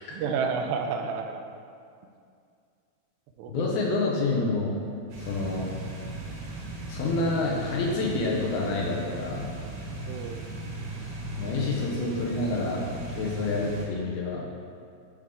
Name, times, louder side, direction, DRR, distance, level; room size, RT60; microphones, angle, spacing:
voice 1, 0.1-1.4 3.4-4.0 10.1-10.5, right 5 dB, 85° right, 5 dB, 2.6 m, -31 dB
voice 2, 3.5-4.8 5.2-5.7 6.9-9.5 11.4-12.9 13.2-14.4, left 3 dB, 80° left, -3 dB, 2.4 m, -28 dB
sound 1, 5.1-13.8, right 1 dB, 60° right, 2.1 m, -37 dB
10.0 x 3.6 x 3.6 m, 2.3 s
omnidirectional pair, 4.8 m